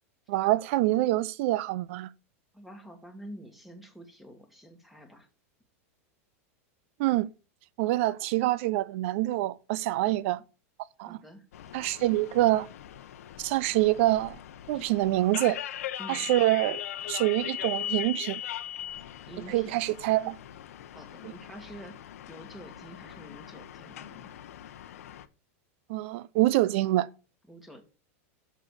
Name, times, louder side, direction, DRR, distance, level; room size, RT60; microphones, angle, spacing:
voice 1, 0.3-2.1 7.0-7.3 7.8-10.4 11.0-11.2 11.7-12.7 13.4-14.4 14.7-15.6 16.1-16.8 17.1-18.4 19.5-20.4 21.2-21.3 25.9-27.1, right 16 dB, 60° right, 0.6 m, -26 dB
voice 2, 2.5-5.3 11.1-11.5 14.7-14.9 16.0-16.3 19.3-19.8 20.9-24.3 27.5-27.8, equal, ahead, 1.7 m, -47 dB
sound 1, 11.5-25.3, left 11 dB, 85° left, 0.8 m, -40 dB
6.5 x 6.1 x 6.7 m
supercardioid pair, 140°, 8 cm